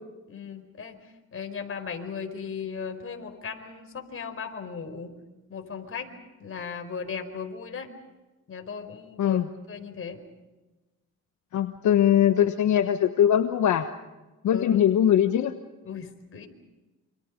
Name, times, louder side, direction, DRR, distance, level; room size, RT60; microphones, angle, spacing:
voice 1, 0.3-1.0 1.3-5.1 5.5-6.1 6.4-7.9 8.5-9.4 9.7-10.2 14.5-14.8 15.8-16.5, left 6 dB, 45° left, 6 dB, 4.7 m, -37 dB
voice 2, 11.5-13.9 14.4-15.5, left 10 dB, 75° left, 7 dB, 1.3 m, -21 dB
28.0 x 27.0 x 5.2 m, 1.1 s
cardioid pair, 90°, 30 cm